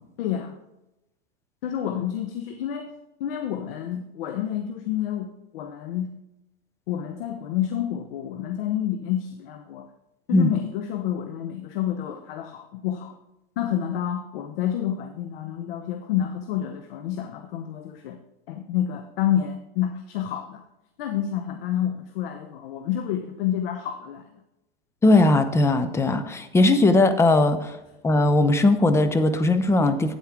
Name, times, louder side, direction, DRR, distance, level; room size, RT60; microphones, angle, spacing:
voice 1, 0.2-0.6 1.6-2.9 3.2-6.1 6.9-9.9 10.3-13.2 13.6-18.2 18.5-20.6 21.0-24.3, left 10 dB, 70° left, 7 dB, 0.9 m, -29 dB
voice 2, 25.0-27.7 28.0-30.1, left 2 dB, 10° left, 9 dB, 0.6 m, -19 dB
9.1 x 8.4 x 3.5 m, 0.91 s
supercardioid pair, 135°, 30 cm